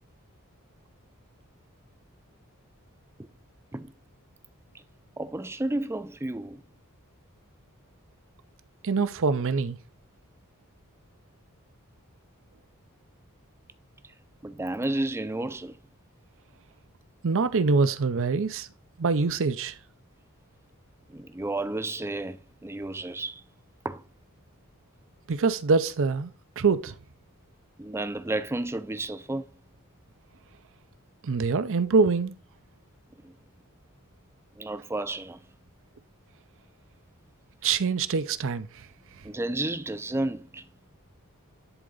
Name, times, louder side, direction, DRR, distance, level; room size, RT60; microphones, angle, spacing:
voice 1, 5.2-6.6 14.4-15.8 21.1-23.4 23.8-24.0 27.8-29.5 33.2-33.3 34.6-35.4 39.2-40.7, right 2 dB, 10° right, 0.4 m, -32 dB
voice 2, 8.8-9.8 17.2-18.7 19.0-19.7 25.3-26.3 26.6-26.9 31.2-32.3 37.6-38.7, right 4 dB, 60° right, 0.6 m, -24 dB
11.0 x 3.8 x 3.9 m
head